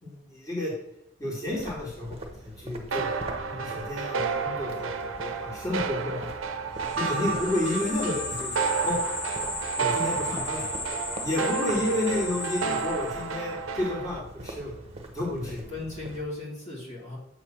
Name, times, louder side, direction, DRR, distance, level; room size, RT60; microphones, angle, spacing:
voice 1, 0.0-0.7 1.2-2.2 2.4-3.1 3.5-6.3 7.0-9.0 9.8-10.7 11.2-14.7 15.1-15.7, left 1 dB, 20° left, -5 dB, 1.8 m, -31 dB
sound 1, 1.5-16.2, right 2 dB, 30° right, 0.8 m, -43 dB
sound 2, 2.9-14.2, right 5 dB, 80° right, 0.6 m, -31 dB
voice 2, 6.0-6.3 11.7-12.0 15.4-17.2, left 2 dB, 35° left, -5 dB, 1.9 m, -38 dB
sound 3, 6.8-13.4, left 3 dB, 70° left, 2.5 m, -36 dB
7.4 x 3.2 x 5.8 m, 0.84 s
head